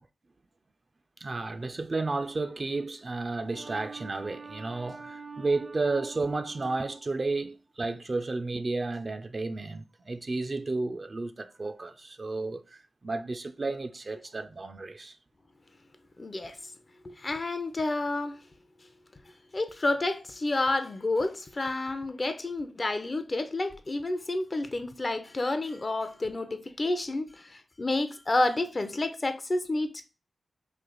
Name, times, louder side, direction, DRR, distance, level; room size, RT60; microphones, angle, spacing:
voice 1, 1.2-15.2, right 3 dB, 45° right, 0.4 m, -32 dB
voice 2, 16.2-16.7 17.0-18.4 19.5-30.0, left 2 dB, 40° left, 0.5 m, -30 dB
3.3 x 2.4 x 3.8 m
cardioid pair, 40°, 0 cm